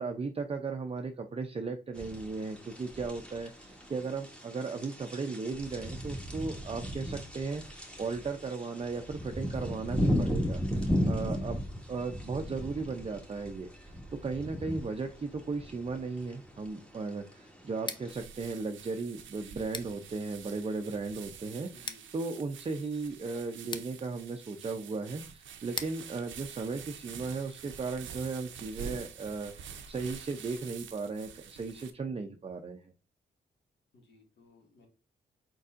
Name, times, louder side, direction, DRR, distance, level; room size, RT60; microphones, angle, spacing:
voice 1, 0.0-11.6 11.9-32.9, right 4 dB, 30° right, 5 dB, 0.5 m, -36 dB
sound 1, 2.0-18.1, equal, 5° left, 1.3 m, -36 dB
Scissors, 17.7-27.5, left 3 dB, 25° left, 0.5 m, -47 dB
sound 2, 18.1-31.9, right 7 dB, 90° right, 0.6 m, -47 dB
voice 2, 21.7-22.1 33.9-34.9, left 4 dB, 65° left, 1 dB, 1.8 m, -59 dB
4.6 x 4.1 x 2.5 m, 0.34 s
cardioid pair, 65°, 19 cm